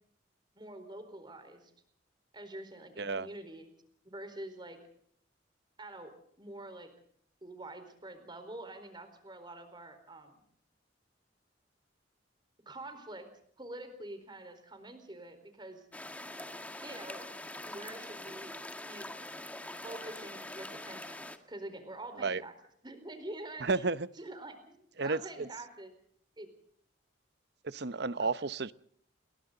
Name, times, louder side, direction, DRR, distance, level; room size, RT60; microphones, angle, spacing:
voice 1, 0.6-1.7 2.3-3.7 4.0-4.8 5.8-6.9 7.4-10.4 12.7-13.3 13.6-15.9 16.8-17.3 17.7-19.1 19.8-22.5 22.8-23.9 24.2-25.9 26.4-26.5 28.2-28.5, right 1 dB, 25° right, 4.4 m, -46 dB
voice 2, 3.0-3.3 22.2-22.4 23.6-24.1 25.0-25.5 27.6-28.7, right 3 dB, 60° right, 0.9 m, -32 dB
sound 1, 15.9-21.4, left 1 dB, 10° left, 1.8 m, -44 dB
30.0 x 22.0 x 4.0 m
head